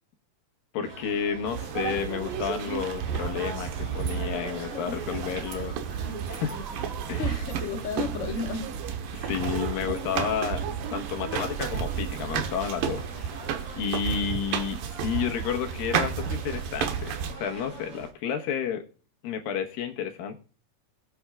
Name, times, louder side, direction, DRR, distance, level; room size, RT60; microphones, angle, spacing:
voice 1, 0.7-5.8 6.3-6.6 7.1-7.3 9.1-13.3 13.8-18.8 19.2-20.4, left 7 dB, 85° left, 3.0 m, -31 dB
sound 1, 0.8-18.1, right 4 dB, 35° right, 3.2 m, -43 dB
sound 2, 1.5-17.3, right 8 dB, 85° right, 2.8 m, -32 dB
voice 2, 4.6-5.0 7.2-8.8, left 5 dB, 65° left, 0.7 m, -33 dB
20.5 x 8.8 x 2.4 m
omnidirectional pair, 4.0 m